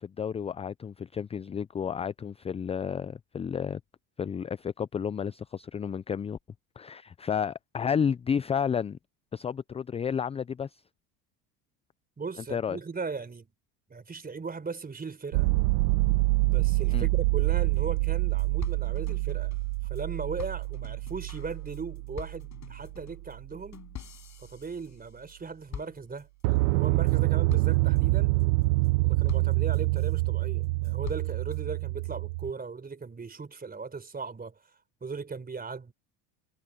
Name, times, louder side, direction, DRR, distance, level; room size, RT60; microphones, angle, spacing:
voice 1, 0.0-3.8 4.2-6.4 6.8-9.0 9.3-10.8 12.5-12.8 16.9-17.1, left 7 dB, 15° left, 0.4 m, -31 dB
voice 2, 12.2-13.5 13.9-15.5 16.4-19.5 19.9-23.8 24.4-28.3 29.0-34.6 35.0-35.9, right 4 dB, 20° right, 4.1 m, -38 dB
sound 1, 15.3-23.1 26.4-32.5, right 24 dB, 75° right, 0.8 m, -26 dB
sound 2, 17.7-17.8 18.0-18.1 18.4-20.0 20.4-25.4 25.7-26.4 26.8-27.2 27.5-28.0 28.4-28.9 29.3-30.2 30.6-31.6, left 9 dB, 40° left, 7.0 m, -45 dB
supercardioid pair, 90°, 44 cm